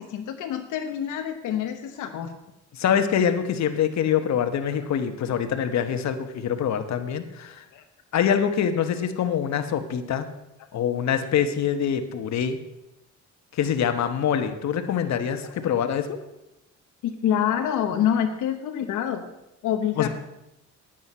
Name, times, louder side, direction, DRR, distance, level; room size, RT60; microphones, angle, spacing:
voice 1, 0.0-2.3 7.7-7.8 15.4-15.7 17.0-19.2 19.6-20.1, left 9 dB, 85° left, 5 dB, 1.0 m, -27 dB
voice 2, 2.7-7.6 8.1-10.3 10.7-12.6 13.5-16.2 20.0-20.1, left 8 dB, 65° left, 8 dB, 1.2 m, -25 dB
9.9 x 9.2 x 5.5 m, 0.90 s
cardioid pair, 90°, 30 cm